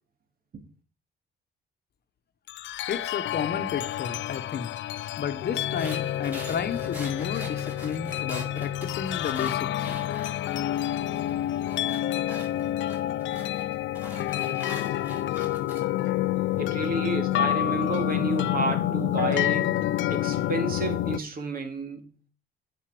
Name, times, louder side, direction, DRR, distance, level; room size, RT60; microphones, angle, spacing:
sound 1, 2.5-21.2, left 13 dB, 70° left, 0.4 m, -28 dB
voice 1, 2.9-4.7 5.2-10.0, left 7 dB, 55° left, 1.1 m, -32 dB
sound 2, 5.6-10.8 11.1-15.8, equal, 10° right, 5.7 m, -43 dB
voice 2, 16.6-19.8 20.1-22.1, right 3 dB, 50° right, 2.1 m, -31 dB
10.0 x 5.5 x 4.9 m
cardioid pair, 90°, 20 cm